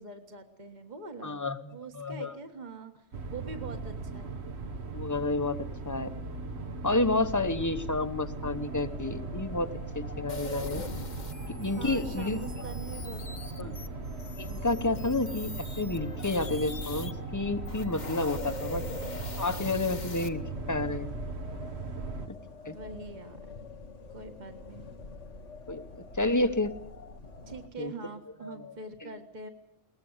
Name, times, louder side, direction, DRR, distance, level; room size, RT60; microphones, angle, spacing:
voice 1, 0.0-1.5 1.7-4.4 11.8-13.8 22.6-23.4 24.1-24.9 27.5-29.5, right 3 dB, 40° right, 5 dB, 1.8 m, -43 dB
voice 2, 1.2-2.3 4.9-5.6 5.9-6.1 6.8-9.7 9.9-10.8 11.5-12.4 13.6-13.7 14.4-15.5 15.8-18.8 19.4-20.4 20.7-21.1 22.3-22.4 22.6-22.8 25.7-25.8 26.1-26.7 27.8-27.9 28.4-28.7, left 2 dB, 15° left, 10 dB, 1.1 m, -30 dB
sound 1, 3.1-22.3, right 3 dB, 60° right, 1.7 m, -38 dB
sound 2, 8.5-27.7, left 3 dB, 85° left, 2.0 m, -46 dB
sound 3, 10.3-17.1 17.6-20.3, left 3 dB, 40° left, 1.3 m, -42 dB
22.0 x 19.5 x 8.1 m, 0.84 s
omnidirectional pair, 1.2 m